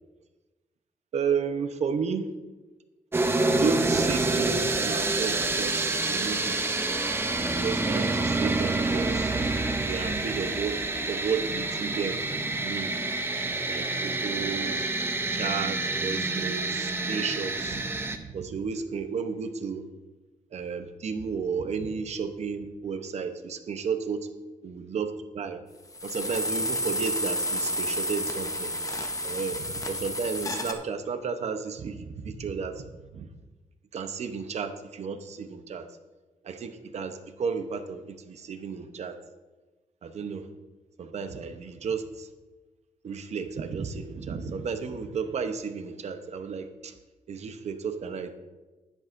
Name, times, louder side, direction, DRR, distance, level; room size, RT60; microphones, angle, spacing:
voice 1, 1.1-2.3 3.4-6.8 7.6-9.4 9.8-10.8 11.1-12.9 13.7-14.9 15.3-17.8 18.2-19.8 20.5-24.3 24.6-25.1 25.3-25.6 26.0-28.7 29.2-32.8 33.1-33.3 33.9-35.9 36.4-39.1 40.0-40.5 41.0-42.3 43.0-46.9 47.3-48.3, right 5 dB, 55° right, 8 dB, 0.8 m, -33 dB
sound 1, 3.1-18.2, right 2 dB, 15° right, 0.6 m, -27 dB
sound 2, 25.9-30.7, left 1 dB, 25° left, 0.8 m, -30 dB
11.0 x 10.0 x 2.6 m, 1.2 s
wide cardioid pair, 135°, 13 cm